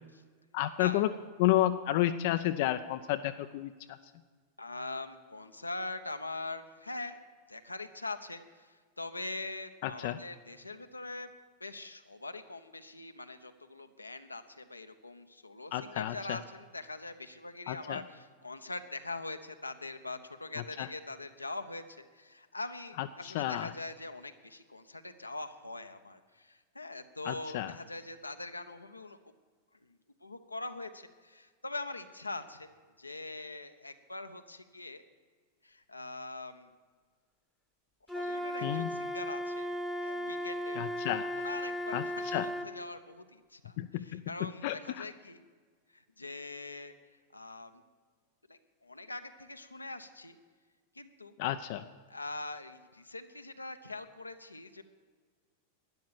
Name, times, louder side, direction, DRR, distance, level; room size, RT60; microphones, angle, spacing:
voice 1, 0.5-1.1 1.4-3.7 9.8-10.2 15.7-16.4 17.7-18.0 20.8-20.9 23.0-23.7 27.2-27.7 38.6-38.9 40.8-41.3 41.9-42.5 43.8-45.0 51.4-51.8, left 14 dB, 50° left, 10 dB, 0.4 m, -31 dB
voice 2, 4.6-7.2 7.5-11.3 11.6-29.2 29.8-32.7 33.0-35.1 35.6-36.7 38.1-40.8 41.3-45.4 45.9-46.9 47.3-47.8 48.5-50.4 50.9-51.4 52.1-54.8, left 2 dB, 85° left, 8 dB, 0.7 m, -43 dB
Wind instrument woodwind instrument, 38.1-42.7, equal, ahead, 1.0 m, -36 dB
12.5 x 10.5 x 6.9 m, 1.5 s
figure-of-eight pair, 90°, 0 cm